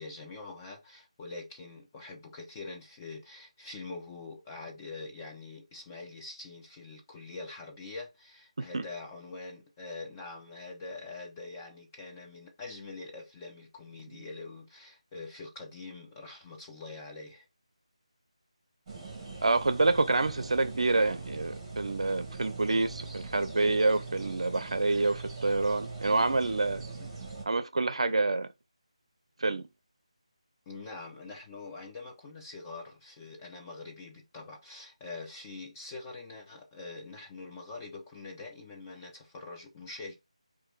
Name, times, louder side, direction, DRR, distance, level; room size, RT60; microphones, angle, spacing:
voice 1, 0.0-17.5 26.9-27.1 30.7-40.1, left 3 dB, 20° left, 1.0 m, -44 dB
sound 1, 18.9-27.4, right 3 dB, 20° right, 1.9 m, -42 dB
voice 2, 19.4-26.9 27.5-28.5 29.4-29.7, right 3 dB, 65° right, 0.5 m, -27 dB
4.1 x 2.6 x 3.9 m
figure-of-eight pair, 160°, 3 cm